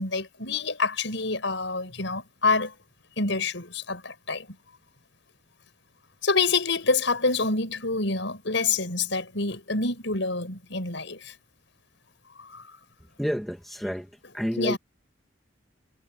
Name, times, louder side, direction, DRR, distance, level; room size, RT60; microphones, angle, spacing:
voice 1, 0.0-2.8 3.2-4.6 6.2-11.3 12.4-12.8 14.6-14.8, left 3 dB, 70° left, 5.5 m, -27 dB
voice 2, 13.2-14.1 14.3-14.8, equal, ahead, 2.1 m, -29 dB
head